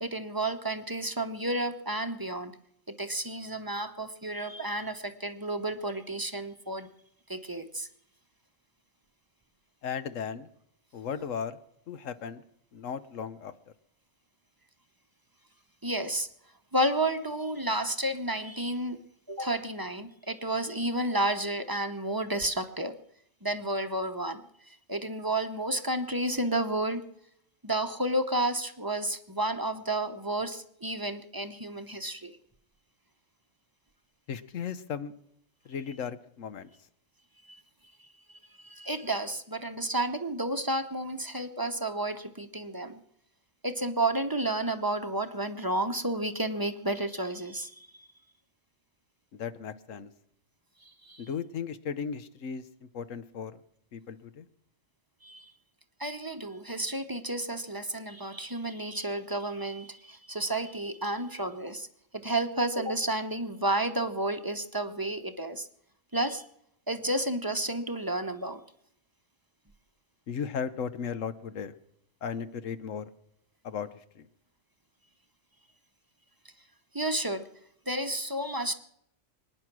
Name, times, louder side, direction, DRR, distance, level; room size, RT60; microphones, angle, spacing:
voice 1, 0.0-2.5 2.9-6.9 7.3-7.9 15.8-16.3 16.7-19.0 19.3-23.0 23.4-24.4 24.7-27.0 27.6-32.4 37.5-37.6 38.6-43.0 43.6-48.1 50.8-51.3 55.2-55.5 56.0-61.9 62.1-65.7 66.1-66.5 66.9-68.6 76.9-77.5 77.9-78.7, right 1 dB, 20° right, 8 dB, 0.8 m, -31 dB
voice 2, 9.8-10.5 10.9-11.6 11.9-12.4 12.7-13.5 34.3-35.1 35.6-36.7 49.3-50.1 51.2-52.6 52.9-53.6 53.9-54.5 70.3-71.7 72.2-73.0 73.6-73.9 74.1-74.3, left 7 dB, 85° left, 11 dB, 1.2 m, -36 dB
24.0 x 9.9 x 6.1 m, 0.75 s
omnidirectional pair, 1.3 m